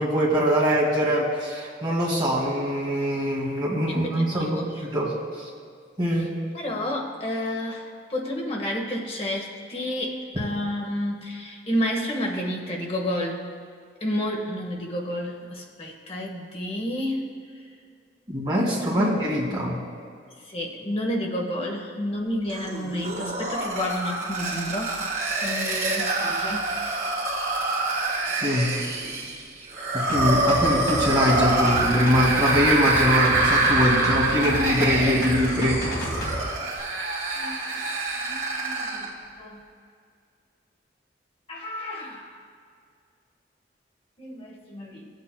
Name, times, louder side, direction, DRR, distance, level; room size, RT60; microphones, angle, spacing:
voice 1, 0.0-5.1 6.0-6.3 18.3-19.8 28.4-28.7 30.1-35.8, equal, 25° right, -5 dB, 2.1 m, -23 dB
voice 2, 3.9-4.9 6.1-6.3 6.5-13.5 14.0-17.3 18.9-19.1 20.4-25.1 25.4-26.7 33.8-34.2 37.3-37.8 38.1-39.6 41.5-42.4 44.2-45.1, left 1 dB, 30° left, 0 dB, 1.1 m, -31 dB
sound 1, 22.5-39.1, right 2 dB, 45° right, 1.8 m, -26 dB
sound 2, 30.1-36.4 36.8-36.9, equal, 50° left, 1.7 m, -32 dB
16.5 x 8.3 x 2.2 m, 2.2 s
head